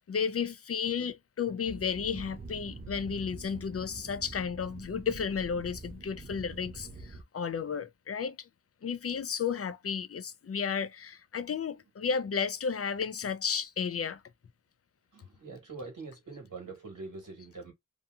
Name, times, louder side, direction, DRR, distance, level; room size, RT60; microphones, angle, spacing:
voice 1, 0.0-8.5 8.8-14.2, left 6 dB, 45° left, 0.4 m, -33 dB
sound 1, 1.6-7.2, right 3 dB, 30° right, 0.4 m, -45 dB
voice 2, 15.1-17.7, right 3 dB, 65° right, 1.4 m, -44 dB
2.7 x 2.6 x 2.3 m
wide cardioid pair, 75°, 33 cm